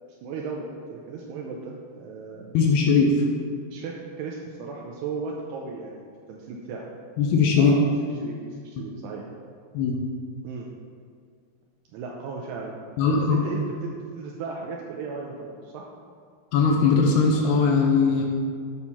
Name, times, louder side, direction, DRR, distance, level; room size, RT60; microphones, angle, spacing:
voice 1, 0.2-2.6 3.7-6.0 6.3-6.9 7.6-7.9 8.2-9.3 10.4-10.7 11.9-15.8, right 4 dB, 85° right, -1 dB, 2.4 m, -36 dB
voice 2, 2.5-3.1 7.2-7.7 9.7-10.0 13.0-13.4 16.5-18.2, left 5 dB, 80° left, 0 dB, 2.5 m, -20 dB
8.5 x 4.4 x 5.5 m, 2.1 s
omnidirectional pair, 5.1 m